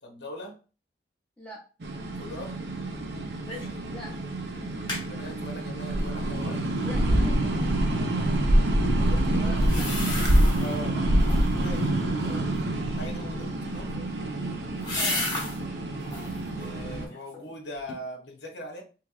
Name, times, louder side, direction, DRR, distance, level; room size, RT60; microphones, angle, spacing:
voice 1, 0.0-0.6 2.1-2.6 4.9-6.7 8.1-8.3 9.0-9.6 10.6-12.5 12.9-14.0 16.5-18.8, left 1 dB, 70° left, 2 dB, 0.8 m, -41 dB
sound 1, 1.8-17.0, right 1 dB, 65° right, 0.6 m, -26 dB
sound 2, 3.5-3.8 4.1-4.2 4.6-5.1 9.6-10.8 11.1-11.7 13.6-15.6 16.0-16.4 16.9-17.5 17.9-18.0, left 2 dB, 25° left, 1.0 m, -34 dB
voice 2, 6.8-8.7 9.4-10.3 10.9-11.2 11.6-11.8 14.9-15.2, equal, 5° left, -5 dB, 0.7 m, -43 dB
3.4 x 3.1 x 2.4 m, 0.35 s
head